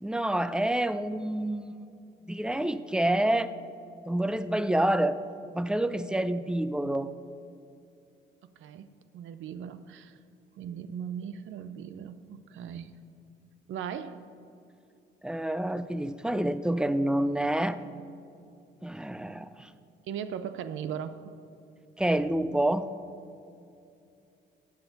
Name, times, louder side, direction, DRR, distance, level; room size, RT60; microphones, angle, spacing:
voice 1, 0.0-1.9 2.3-3.5 4.0-5.2 5.5-7.1 15.2-17.8 18.8-19.7 22.0-22.9, right 1 dB, 5° right, 13 dB, 0.5 m, -28 dB
voice 2, 8.4-8.9 9.1-10.2 10.6-13.0 13.7-14.2 20.1-21.2, right 8 dB, 80° right, 12 dB, 0.7 m, -38 dB
15.5 x 9.3 x 4.0 m, 2.6 s
cardioid pair, 90°, 20 cm